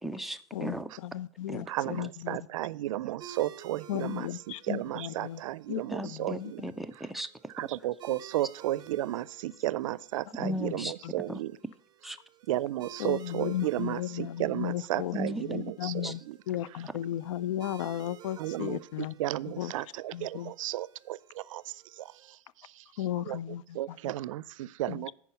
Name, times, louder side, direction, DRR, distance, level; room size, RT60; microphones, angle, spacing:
voice 1, 0.0-0.9 1.5-1.6 5.9-7.3 10.4-10.9 11.3-11.4 12.0-12.2 15.1-15.4 16.0-16.1, equal, ahead, 0.3 m, -36 dB
voice 2, 0.5-2.4 3.9-5.4 5.7-6.5 10.4-11.1 13.0-16.2 16.5-19.1 19.5-19.7 20.1-20.5 23.0-24.0 24.9-25.1, left 12 dB, 80° left, 0.4 m, -35 dB
voice 3, 1.7-6.6 7.5-11.6 12.5-16.4 18.4-18.8 19.2-22.4 22.6-22.8 23.3-23.4 23.7-25.1, right 14 dB, 85° right, 0.4 m, -34 dB
sound 1, 3.2-22.3, right 9 dB, 25° right, 0.7 m, -54 dB
11.0 x 4.7 x 5.7 m
supercardioid pair, 145°, 16 cm